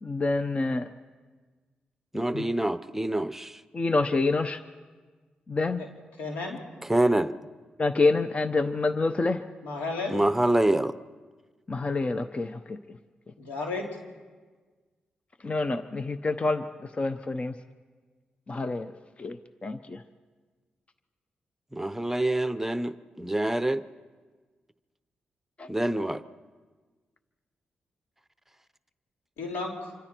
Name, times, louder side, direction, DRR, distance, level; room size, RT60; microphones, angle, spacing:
voice 1, 0.0-0.9 2.3-2.5 3.7-4.6 5.5-5.8 7.8-9.4 11.7-12.8 15.4-16.6 17.0-17.5 18.5-18.9 19.2-19.4 19.6-20.0 25.6-25.7, left 3 dB, 40° left, 10 dB, 0.9 m, -27 dB
voice 2, 2.1-3.6 6.9-7.3 10.1-10.9 21.7-23.8 25.7-26.2, right 1 dB, 10° right, 13 dB, 0.8 m, -26 dB
voice 3, 6.2-6.6 9.6-10.2 13.4-14.0 29.4-29.9, left 3 dB, 90° left, 1 dB, 3.2 m, -33 dB
26.5 x 24.5 x 4.6 m, 1.4 s
supercardioid pair, 50°, 3 cm